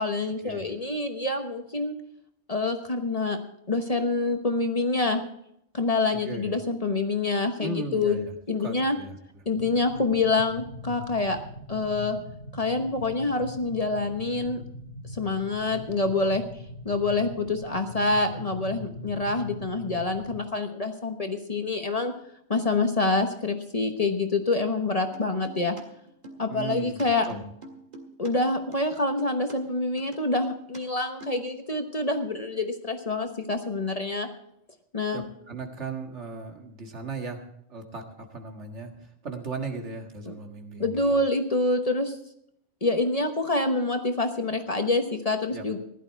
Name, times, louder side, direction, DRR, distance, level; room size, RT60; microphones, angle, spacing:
voice 1, 0.0-1.9 2.5-3.4 3.7-5.2 5.7-8.2 8.5-9.0 9.5-11.4 11.7-12.2 12.5-14.6 15.1-16.4 16.8-22.1 22.5-25.8 26.4-27.3 28.2-34.3 34.9-35.2 40.8-42.2 42.8-45.8, left 3 dB, 35° left, 5 dB, 1.1 m, -26 dB
voice 2, 6.1-6.6 7.6-8.3 8.6-9.4 26.5-27.4 35.1-37.4 37.7-41.2 45.5-45.8, right 4 dB, 70° right, 3 dB, 2.0 m, -37 dB
sound 1, 9.6-20.4, left 1 dB, 65° left, 1.8 m, -41 dB
sound 2, 25.1-25.8 26.1-28.3 28.6-29.5 30.0-30.8 31.1-31.4, right 1 dB, 35° right, 2.0 m, -44 dB
15.5 x 11.5 x 4.6 m, 0.74 s
omnidirectional pair, 1.2 m